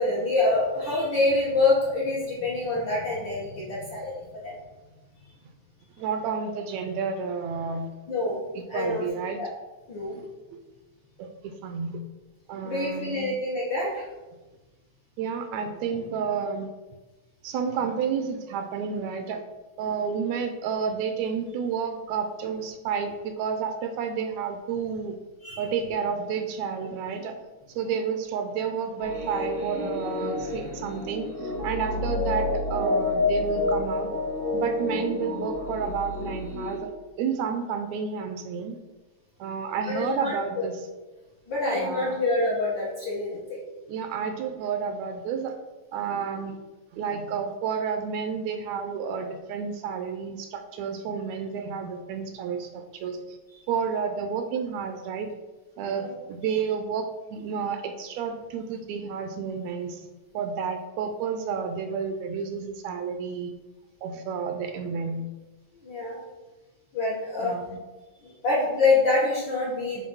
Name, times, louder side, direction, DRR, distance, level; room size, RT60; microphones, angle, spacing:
voice 1, 0.0-4.6 8.1-8.4 8.7-9.0 9.4-9.5 9.9-10.2 12.6-14.1 25.4-25.6 39.9-40.6 41.5-43.6 53.5-53.6 56.0-56.1 65.8-66.2 66.9-67.5 68.2-70.1, left 2 dB, 60° left, -5 dB, 1.3 m, -26 dB
voice 2, 6.0-7.9 8.6-9.4 10.2-10.3 11.2-12.0 12.5-13.3 15.2-16.7 17.4-19.4 19.8-25.2 25.6-27.4 27.8-34.1 34.5-36.9 37.2-38.8 39.4-40.9 41.7-42.2 43.9-45.6 45.9-46.6 46.9-53.4 53.7-55.3 55.8-60.1 60.3-63.5 64.0-65.3 67.4-67.8, right 6 dB, 80° right, 6 dB, 1.7 m, -31 dB
sound 1, 29.0-36.8, left 2 dB, 40° right, 0.8 m, -29 dB
7.2 x 2.6 x 5.4 m, 1.1 s
omnidirectional pair, 3.4 m